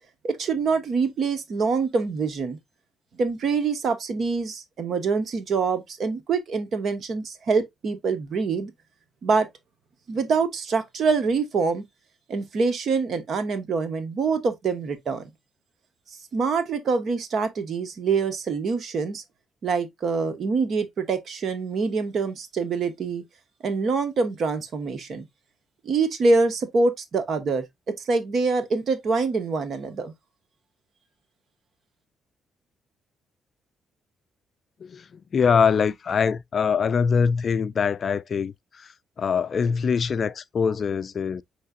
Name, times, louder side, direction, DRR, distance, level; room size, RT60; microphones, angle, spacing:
voice 1, 0.2-2.6 3.2-8.7 9.2-9.5 10.1-11.8 12.3-15.3 16.3-19.2 19.6-23.2 23.6-25.2 25.8-27.6 28.0-30.1, right 4 dB, 55° right, 1.1 m, -25 dB
voice 2, 34.8-41.4, left 6 dB, 45° left, 0.3 m, -23 dB
5.7 x 3.2 x 2.5 m
cardioid pair, 90°, 0 cm